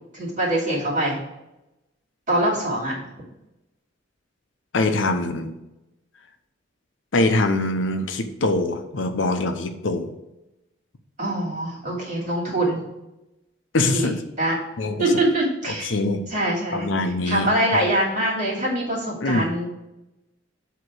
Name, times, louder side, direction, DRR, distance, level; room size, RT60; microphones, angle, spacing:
voice 1, 0.1-1.2 2.3-2.9 11.2-12.9 13.9-14.1 14.4-14.6 15.0-15.9 16.3-16.9 17.2-19.7, right 1 dB, 45° right, -4 dB, 2.6 m, -23 dB
voice 2, 4.7-5.5 7.1-10.1 13.7-14.2 14.8-15.1 15.7-16.3 16.7-17.8 19.2-19.5, left 2 dB, 80° left, 7 dB, 0.7 m, -23 dB
7.8 x 3.0 x 6.0 m, 0.95 s
head